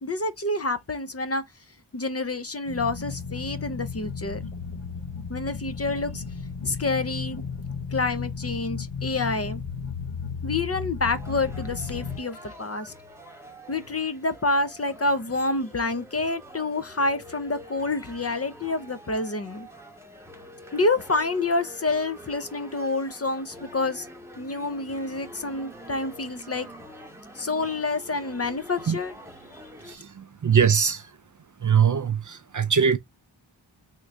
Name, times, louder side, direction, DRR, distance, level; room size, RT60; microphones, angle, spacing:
voice 1, 0.0-1.4 1.9-4.4 5.3-6.2 6.6-7.4 7.9-9.6 10.4-12.9 13.7-19.7 20.7-24.1 24.4-26.7 27.3-29.1, left 3 dB, 30° left, 0.6 m, -28 dB
sound 1, 2.7-12.2, left 6 dB, 75° left, 1.0 m, -34 dB
sound 2, 11.1-30.0, equal, 5° right, 1.0 m, -46 dB
voice 2, 29.9-31.1 31.6-33.0, right 7 dB, 40° right, 0.5 m, -22 dB
3.6 x 2.6 x 3.1 m
cardioid pair, 45°, 48 cm